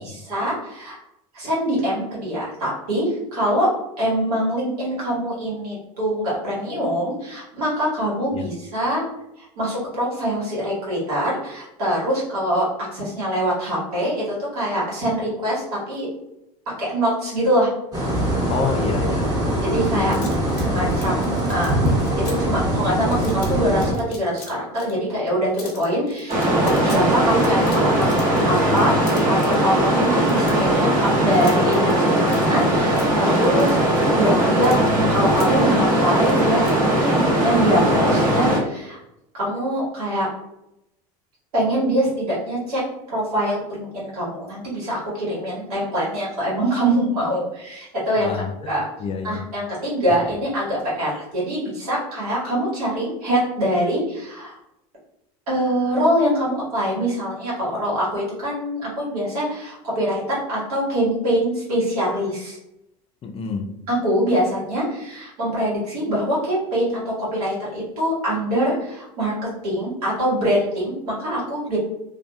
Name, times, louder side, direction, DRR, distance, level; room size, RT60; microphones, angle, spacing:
voice 1, 0.2-1.0 1.3-3.7 4.0-9.0 9.4-16.1 16.8-17.7 19.6-20.2 20.6-21.7 22.2-34.8 35.1-39.0 39.3-40.3 41.5-42.8 43.1-48.8 49.2-54.6 55.5-62.6 63.9-69.4 69.6-71.8, equal, 90° right, -6 dB, 1.4 m, -24 dB
sound 1, 17.9-23.9, right 1 dB, 20° right, 0.9 m, -22 dB
voice 2, 18.5-19.3 19.9-20.3 48.2-49.4 63.2-63.7, left 4 dB, 30° left, 5 dB, 0.4 m, -28 dB
sound 2, 19.8-22.3 23.1-23.5 23.8-24.9 25.2-25.3 25.6-29.6 30.2-32.6 33.0-35.5 36.2-36.7, left 5 dB, 85° left, 0.7 m, -42 dB
sound 3, 26.3-38.6, right 1 dB, 45° right, 1.0 m, -19 dB
2.7 x 2.4 x 2.3 m, 0.85 s
hypercardioid pair, 90°, 19 cm